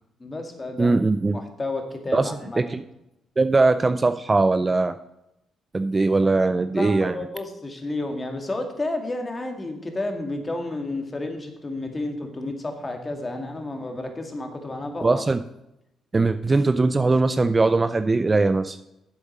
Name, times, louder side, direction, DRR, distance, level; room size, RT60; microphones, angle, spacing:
voice 1, 0.2-1.0 1.3-2.6 6.7-15.2, left 2 dB, 25° left, 4 dB, 1.9 m, -31 dB
voice 2, 0.8-1.4 2.1-2.3 2.6-2.8 3.4-5.0 5.7-7.2 15.0-15.4 16.1-18.8, right 3 dB, 25° right, 11 dB, 0.4 m, -20 dB
7.8 x 7.3 x 6.4 m, 0.86 s
cardioid pair, 90°, 0 cm